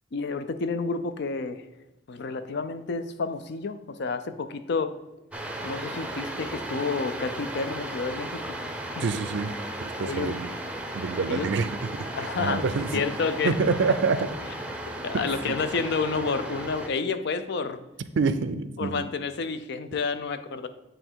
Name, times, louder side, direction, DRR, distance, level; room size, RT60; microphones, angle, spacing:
voice 1, 0.1-1.6 2.1-4.9 5.6-8.6 8.9-9.0 10.0-10.4 11.3-11.5 12.2-12.6 12.9-13.6 15.0-17.8 18.8-20.7, left 4 dB, 60° left, 10 dB, 0.5 m, -30 dB
sound 1, 5.3-16.9, right 1 dB, 5° right, 0.6 m, -35 dB
voice 2, 9.0-9.5 9.8-10.5 10.9-13.0 13.4-14.3 15.1-15.6 18.2-19.1, right 4 dB, 65° right, 12 dB, 0.4 m, -27 dB
8.8 x 3.3 x 4.5 m, 0.99 s
head